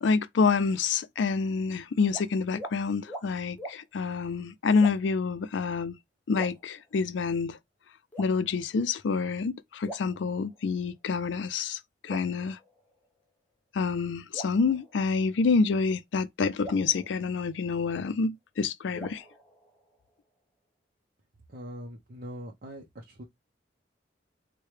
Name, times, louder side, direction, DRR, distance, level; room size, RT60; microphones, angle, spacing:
voice 1, 0.0-6.0 6.3-7.6 8.2-12.6 13.7-19.2, left 4 dB, 75° left, 0.4 m, -27 dB
sound 1, 2.1-2.3 2.6-2.8 3.1-3.3 3.6-3.8 4.8-5.2 6.3-7.2 8.1-8.8 9.8-10.8 12.1-13.2 14.3-15.5 16.6-18.0 18.9-20.2, right 1 dB, 10° left, 0.9 m, -45 dB
voice 2, 21.5-23.2, equal, 50° right, 0.7 m, -42 dB
4.6 x 2.2 x 3.2 m
head